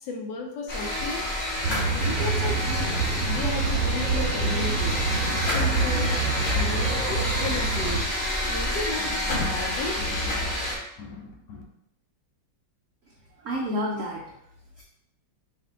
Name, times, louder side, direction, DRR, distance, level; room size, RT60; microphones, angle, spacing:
voice 1, 0.0-1.3 2.0-2.9 3.3-5.0 5.5-8.1 8.5-10.5 11.0-11.6, left 3 dB, 70° left, 1 dB, 1.2 m, -34 dB
sound 1, 0.7-10.8, left 1 dB, 35° left, 0.8 m, -28 dB
sound 2, 1.6-8.0, right 4 dB, 55° right, 0.9 m, -27 dB
voice 2, 13.1-14.4 14.8-14.9, equal, 80° right, -3 dB, 0.7 m, -31 dB
4.7 x 2.6 x 3.6 m, 0.78 s
omnidirectional pair, 2.2 m